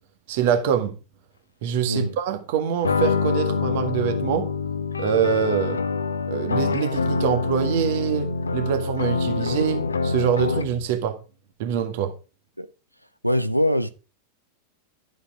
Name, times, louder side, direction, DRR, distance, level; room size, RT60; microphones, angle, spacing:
voice 1, 0.3-0.9 1.6-4.5 5.0-5.8 6.3-11.2 11.6-12.1, right 8 dB, 50° right, 1.7 m, -24 dB
sound 1, 2.8-10.9, left 4 dB, 75° left, 0.9 m, -25 dB
voice 2, 13.2-13.9, left 1 dB, 90° right, 0.7 m, -22 dB
12.0 x 7.8 x 4.9 m
figure-of-eight pair, 90°, 0 cm